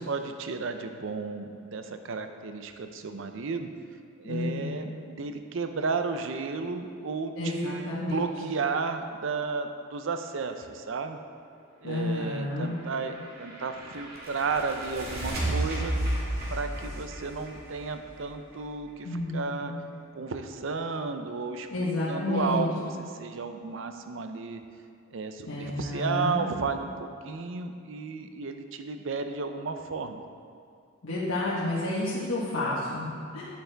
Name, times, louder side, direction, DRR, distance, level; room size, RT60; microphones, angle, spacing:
voice 1, 0.0-3.7 4.2-11.2 11.8-15.9 16.5-19.7 20.1-21.7 22.1-22.9 23.2-24.6 25.1-30.2, right 4 dB, 65° right, 7 dB, 0.5 m, -33 dB
voice 2, 4.2-4.7 7.4-8.3 11.8-12.7 19.0-19.8 21.7-22.7 25.5-26.4 31.0-33.5, left 2 dB, 85° left, -8 dB, 1.2 m, -30 dB
sound 1, 12.8-18.5, right 1 dB, 50° right, 2.0 m, -33 dB
9.5 x 7.6 x 3.4 m, 2.4 s
head